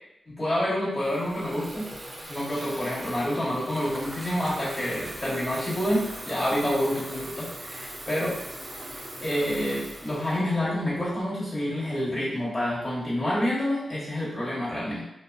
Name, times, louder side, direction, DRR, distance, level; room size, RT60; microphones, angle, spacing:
voice 1, 0.3-1.9 2.3-8.4 9.2-15.0, equal, 35° left, -9 dB, 1.3 m, -28 dB
Water tap faucet / Fill (with liquid), 1.0-11.2, right 1 dB, 25° right, 0.5 m, -40 dB
2.5 x 2.1 x 2.4 m, 0.85 s
supercardioid pair, 45°, 0 cm